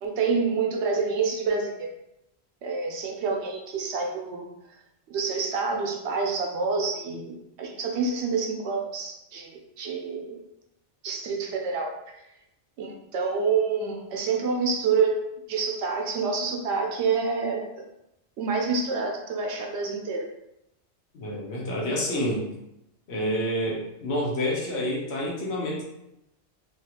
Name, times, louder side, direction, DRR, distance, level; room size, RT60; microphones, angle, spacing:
voice 1, 0.0-1.9 2.6-4.5 5.1-10.4 11.0-11.9 12.8-15.1 15.5-17.6 18.4-20.3, right 4 dB, 75° right, 1 dB, 0.9 m, -27 dB
voice 2, 21.1-22.5 23.1-25.8, equal, 70° left, -3 dB, 1.0 m, -28 dB
2.9 x 2.4 x 2.8 m, 0.85 s
omnidirectional pair, 1.2 m